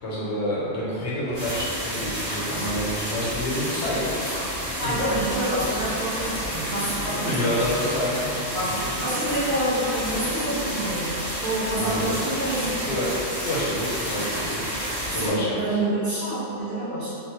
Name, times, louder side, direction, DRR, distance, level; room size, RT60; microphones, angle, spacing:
voice 1, 0.0-4.2 4.8-5.2 7.2-9.0 11.7-12.1 12.8-13.1 13.4-14.6 15.1-15.8, left 1 dB, 80° left, -6 dB, 1.1 m, -28 dB
sound 1, 1.3-15.3, equal, 40° right, 1.1 m, -30 dB
sound 2, 1.3-15.2, left 2 dB, 85° right, 1.8 m, -40 dB
voice 2, 4.7-7.6 8.5-13.0 13.2-13.3 15.1-17.1, right 1 dB, 60° right, -12 dB, 1.4 m, -28 dB
Bowed string instrument, 6.0-10.2, left 2 dB, 50° left, 0.6 m, -43 dB
3.9 x 2.2 x 2.9 m, 2.7 s
omnidirectional pair, 1.2 m